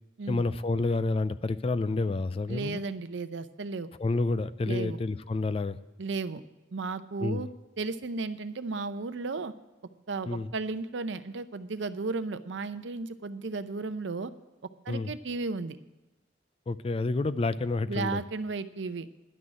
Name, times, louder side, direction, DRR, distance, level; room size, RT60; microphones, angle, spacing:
voice 1, 0.3-2.8 4.0-5.8 7.2-7.5 10.3-10.5 14.9-15.1 16.7-18.2, left 3 dB, 30° left, 14 dB, 0.3 m, -29 dB
voice 2, 2.5-3.9 4.7-5.0 6.0-6.4 6.7-7.5 7.8-9.5 10.1-14.3 14.9-15.8 17.9-19.1, right 3 dB, 80° right, 12 dB, 0.6 m, -34 dB
11.0 x 6.3 x 8.8 m, 1.1 s
head